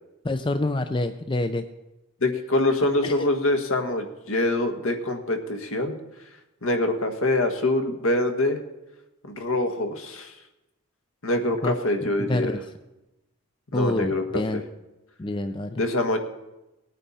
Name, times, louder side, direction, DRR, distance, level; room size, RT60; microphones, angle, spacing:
voice 1, 0.2-1.6 3.0-3.3 11.6-11.7 12.0-12.6 13.7-14.6 15.2-15.8, left 2 dB, 20° left, 9 dB, 0.4 m, -27 dB
voice 2, 2.2-5.9 6.6-8.6 9.2-10.3 11.2-12.5 13.7-14.4 15.7-16.2, left 2 dB, 70° left, 7 dB, 1.4 m, -24 dB
18.5 x 9.1 x 4.2 m, 0.97 s
head